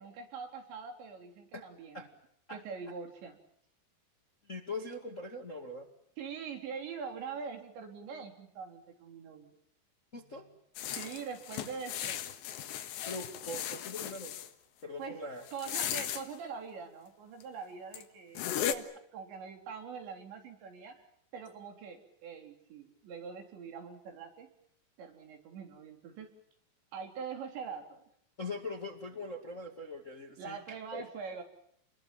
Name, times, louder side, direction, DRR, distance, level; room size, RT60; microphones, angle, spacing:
voice 1, 0.0-2.1 2.5-3.4 6.2-9.5 11.0-12.2 15.0-15.2 15.5-18.9 19.1-21.0 21.3-24.5 25.0-26.3 26.9-28.1 30.4-31.4, right 6 dB, 85° right, 4 dB, 6.1 m, -43 dB
voice 2, 4.4-5.9 10.1-10.5 13.0-14.4 14.8-15.4 28.4-31.0, left 2 dB, 30° left, 4 dB, 1.4 m, -41 dB
sound 1, 10.8-14.5 15.5-16.2 17.4-17.5 17.9-18.0 18.4-18.8, left 10 dB, 80° left, 3.7 m, -36 dB
29.5 x 22.0 x 7.4 m, 0.71 s
omnidirectional pair, 5.0 m